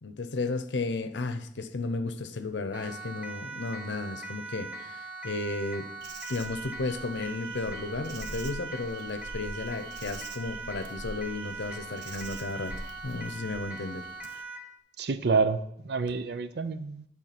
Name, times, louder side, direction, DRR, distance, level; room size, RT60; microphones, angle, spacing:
voice 1, 0.0-5.9 6.3-12.8 13.0-14.1, left 3 dB, 85° left, 10 dB, 0.7 m, -34 dB
Siren, 2.7-14.7, right 3 dB, 10° right, 0.8 m, -41 dB
Insect, 6.0-14.4, right 2 dB, 90° right, 0.8 m, -44 dB
voice 2, 15.0-17.1, right 4 dB, 65° right, 11 dB, 0.5 m, -28 dB
11.0 x 3.7 x 5.9 m, 0.74 s
head